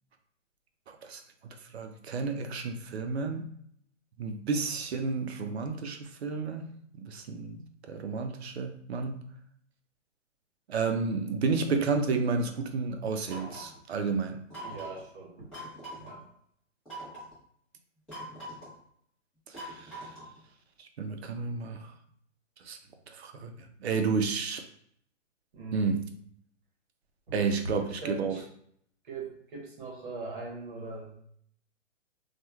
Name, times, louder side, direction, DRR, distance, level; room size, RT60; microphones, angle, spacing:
voice 1, 0.9-3.5 4.2-6.7 7.0-7.6 7.9-9.2 10.7-14.4 19.5-20.0 20.8-21.9 22.6-22.8 23.1-23.5 23.8-24.6 25.7-26.0 27.3-28.4, right 4 dB, 60° right, 6 dB, 0.5 m, -31 dB
sound 1, 13.3-13.8 14.5-15.0 15.5-16.1 16.9-17.3 18.1-18.8 19.5-20.4, right 1 dB, ahead, 0.7 m, -42 dB
voice 2, 14.6-15.5 16.0-16.2 25.5-25.9 27.3-28.4 29.0-31.2, right 3 dB, 45° right, -1 dB, 0.9 m, -41 dB
3.0 x 2.2 x 2.2 m, 0.66 s
hypercardioid pair, 150°, 37 cm